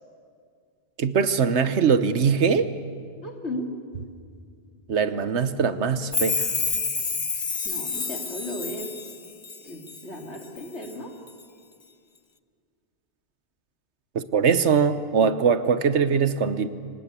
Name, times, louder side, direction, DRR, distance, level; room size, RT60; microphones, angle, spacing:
voice 1, 1.0-2.7 4.9-6.4 14.1-16.7, right 6 dB, 75° right, 12 dB, 1.3 m, -22 dB
voice 2, 3.2-3.7 7.6-8.9 9.6-11.1, left 1 dB, 75° left, 2 dB, 3.1 m, -35 dB
Chime, 6.1-10.0 10.4-10.9 11.3-11.4, left 5 dB, 30° left, 0.6 m, -29 dB
26.0 x 18.5 x 8.3 m, 2.1 s
omnidirectional pair, 1.2 m